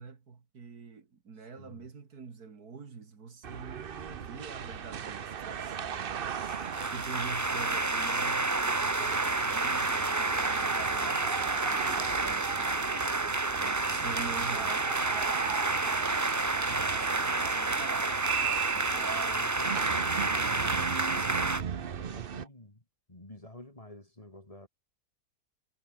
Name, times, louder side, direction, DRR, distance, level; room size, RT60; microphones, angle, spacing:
voice 1, 0.0-6.4 6.9-13.0 13.5-16.3 16.7-17.8, right 5 dB, 70° right, 2.7 m, -46 dB
voice 2, 1.6-1.9 7.3-7.9 14.1-14.7 15.0-15.2 19.2-22.8 23.1-24.7, left 1 dB, 20° left, 2.9 m, -50 dB
sound 1, 3.4-22.4, right 8 dB, 45° right, 0.8 m, -37 dB
sound 2, 6.4-21.6, right 2 dB, 15° right, 0.6 m, -30 dB
omnidirectional pair, 1.7 m